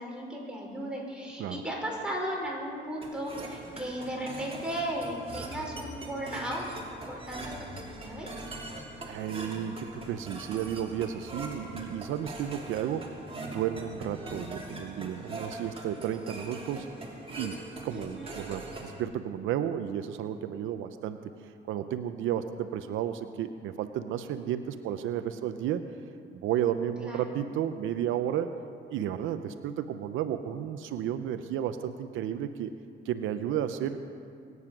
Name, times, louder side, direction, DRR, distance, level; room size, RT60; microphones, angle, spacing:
voice 1, 0.0-6.6 7.0-8.4 17.9-18.4 27.0-27.2, equal, 5° right, -3 dB, 5.2 m, -36 dB
sound 1, 3.0-19.0, right 2 dB, 30° right, 2.8 m, -42 dB
voice 2, 9.0-16.9 17.4-25.9 26.3-28.6 28.9-32.7 33.0-34.0, right 10 dB, 85° right, 9 dB, 0.7 m, -33 dB
22.5 x 9.5 x 6.0 m, 2.4 s
cardioid pair, 90°, 20 cm